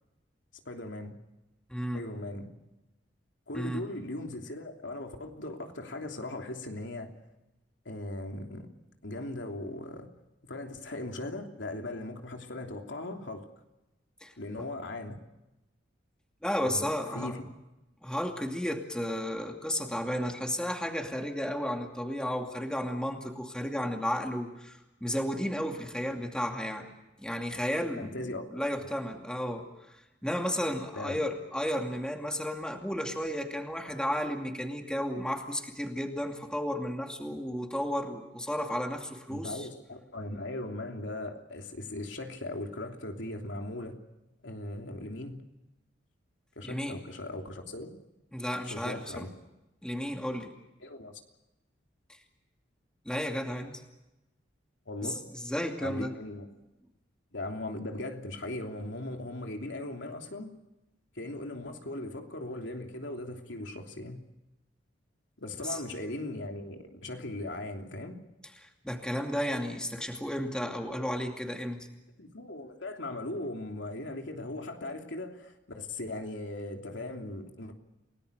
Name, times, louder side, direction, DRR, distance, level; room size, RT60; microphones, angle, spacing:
voice 1, 0.6-1.1 1.9-2.5 3.5-7.1 7.8-8.7 9.0-10.1 10.4-13.5 14.4-15.2 16.6-16.9 17.1-17.5 28.0-28.9 30.9-31.2 39.3-44.0 44.4-45.4 46.5-47.9 48.6-49.3 50.8-51.1 54.9-55.2 55.8-56.5 57.3-60.5 61.1-64.2 65.4-68.2 72.2-77.7, left 2 dB, 80° left, 3 dB, 3.1 m, -38 dB
voice 2, 1.7-2.0 3.5-3.9 14.2-14.7 16.4-17.4 18.0-26.9 27.2-28.2 28.5-39.7 46.6-47.0 48.3-49.3 49.8-50.5 53.1-53.8 55.0-56.1 65.6-65.8 68.6-71.9, equal, 5° left, 3 dB, 2.5 m, -33 dB
29.5 x 18.5 x 6.8 m, 0.97 s
head